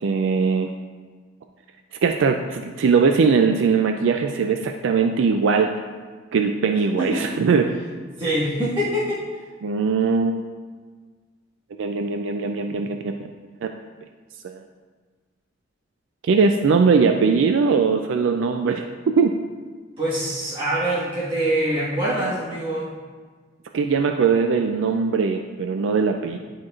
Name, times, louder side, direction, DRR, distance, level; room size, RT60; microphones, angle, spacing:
voice 1, 0.0-0.7 2.0-5.8 6.3-7.8 9.6-10.4 11.8-13.2 13.6-13.7 16.2-18.9 19.1-19.3 23.7-26.4, right 5 dB, 70° right, 5 dB, 0.4 m, -20 dB
voice 2, 8.2-9.2 20.0-22.9, right 1 dB, 25° right, -10 dB, 1.5 m, -24 dB
11.0 x 4.5 x 2.4 m, 1.5 s
head